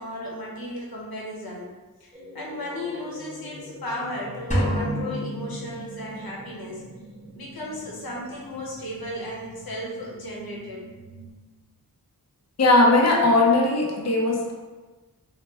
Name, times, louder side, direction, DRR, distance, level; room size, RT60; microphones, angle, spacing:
voice 1, 0.0-1.7 2.0-6.8 7.3-10.9, left 1 dB, 70° left, -3 dB, 0.9 m, -35 dB
sound 1, 2.1-11.3, equal, 10° right, 1.1 m, -44 dB
sound 2, 4.5-6.3, equal, 20° left, 0.9 m, -27 dB
voice 2, 12.6-14.5, left 2 dB, 45° left, -2 dB, 0.6 m, -19 dB
3.1 x 2.1 x 3.2 m, 1.2 s
wide cardioid pair, 60°, 37 cm